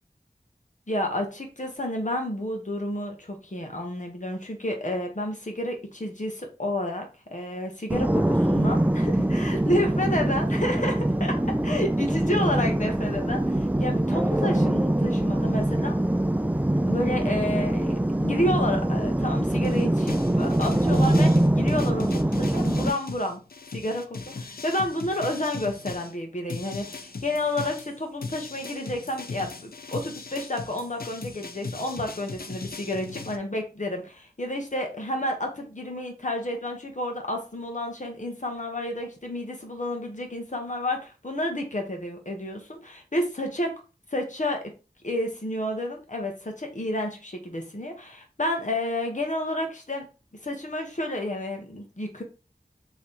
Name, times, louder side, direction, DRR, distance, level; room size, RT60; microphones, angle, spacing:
voice 1, 0.9-11.4 11.6-15.9 16.8-23.4 23.7-43.7 44.1-44.7 45.0-50.1 50.4-52.2, left 1 dB, 50° left, 3 dB, 1.2 m, -30 dB
sound 1, 7.9-22.9, right 1 dB, 10° right, 0.4 m, -23 dB
sound 2, 19.6-26.1 26.5-33.4, left 4 dB, 70° left, 0.5 m, -38 dB
3.4 x 3.1 x 4.2 m, 0.33 s
wide cardioid pair, 45°, 16 cm